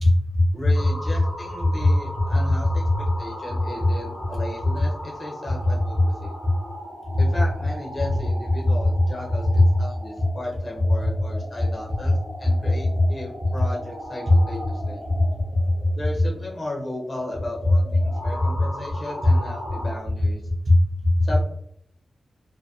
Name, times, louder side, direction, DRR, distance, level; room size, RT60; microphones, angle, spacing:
voice 1, 0.0-0.7 1.8-1.9 5.9-6.0 6.4-6.5 8.9-9.0 9.5-9.6 12.9-13.0 14.3-14.4 15.2-15.3 15.5-15.9 19.2-19.3 20.7-21.2, left 2 dB, 40° right, -1 dB, 0.6 m, -18 dB
voice 2, 0.5-6.3 7.2-15.0 15.9-20.4 21.2-21.4, left 1 dB, 30° left, -3 dB, 0.5 m, -35 dB
sound 1, 0.7-20.0, equal, 75° left, 1.0 m, -38 dB
2.6 x 2.1 x 2.3 m, 0.70 s
wide cardioid pair, 155°, 0 cm